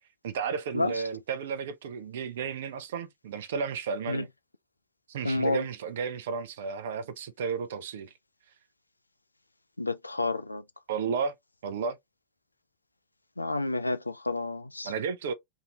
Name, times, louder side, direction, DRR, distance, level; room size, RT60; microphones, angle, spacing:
voice 1, 0.2-4.3 5.1-8.1 10.9-11.3 11.6-12.0 14.8-15.3, right 6 dB, 60° right, 0.6 m, -33 dB
voice 2, 5.2-5.7 9.8-10.6 13.4-14.9, left 2 dB, 85° left, 0.3 m, -30 dB
2.7 x 2.7 x 2.8 m
figure-of-eight pair, 90°, 0 cm